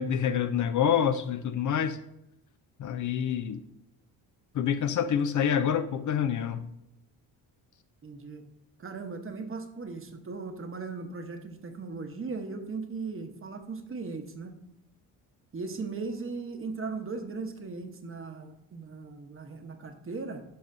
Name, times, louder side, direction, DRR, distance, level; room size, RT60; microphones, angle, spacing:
voice 1, 0.0-2.0 2.8-3.6 4.5-6.7, left 8 dB, 45° left, 0.5 m, -27 dB
voice 2, 8.0-8.4 8.8-14.5 15.5-20.4, right 4 dB, 30° right, 1.0 m, -38 dB
11.0 x 5.4 x 2.6 m
supercardioid pair, 65°, 41 cm